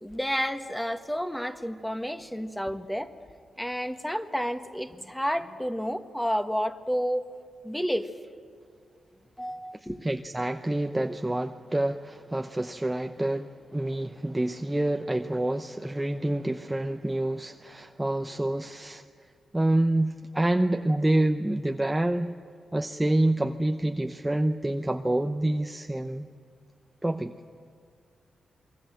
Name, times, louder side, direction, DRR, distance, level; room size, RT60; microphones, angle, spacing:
voice 1, 0.0-3.1 3.6-7.3 7.6-8.1 9.4-10.0, equal, 5° left, 7 dB, 1.5 m, -30 dB
voice 2, 9.7-19.0 19.5-22.3 22.7-26.3 27.0-27.3, right 1 dB, 15° right, 6 dB, 0.8 m, -27 dB
28.0 x 22.0 x 7.8 m, 2.3 s
cardioid pair, 75°, 0 cm